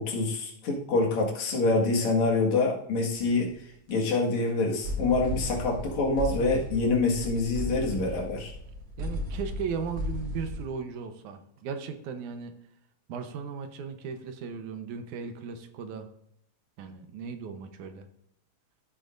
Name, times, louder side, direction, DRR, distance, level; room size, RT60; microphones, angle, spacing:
voice 1, 0.0-3.5 3.9-8.5, left 3 dB, 70° left, -1 dB, 3.0 m, -26 dB
sound 1, 3.2-3.4 3.9-4.0 4.4-4.5 4.8-10.7, left 1 dB, 45° right, 2.7 m, -35 dB
voice 2, 9.0-12.6 13.1-16.1 16.8-18.1, right 6 dB, 80° right, 7 dB, 2.4 m, -37 dB
14.0 x 7.6 x 2.5 m, 0.72 s
omnidirectional pair, 3.4 m